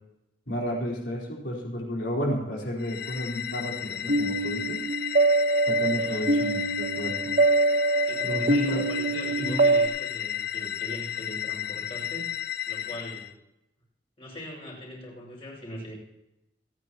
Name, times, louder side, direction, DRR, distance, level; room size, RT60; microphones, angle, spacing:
voice 1, 0.5-4.8 5.7-7.3 8.2-8.8 9.4-9.6, equal, 80° left, -2 dB, 4.3 m, -32 dB
sound 1, 2.8-13.3, left 11 dB, 60° left, 0.7 m, -33 dB
sound 2, 4.1-9.9, right 3 dB, 55° right, 1.2 m, -24 dB
voice 2, 6.0-6.5 8.0-12.3 12.6-13.3 14.2-15.9, equal, 35° left, -2 dB, 6.4 m, -41 dB
29.0 x 9.9 x 3.0 m, 0.88 s
head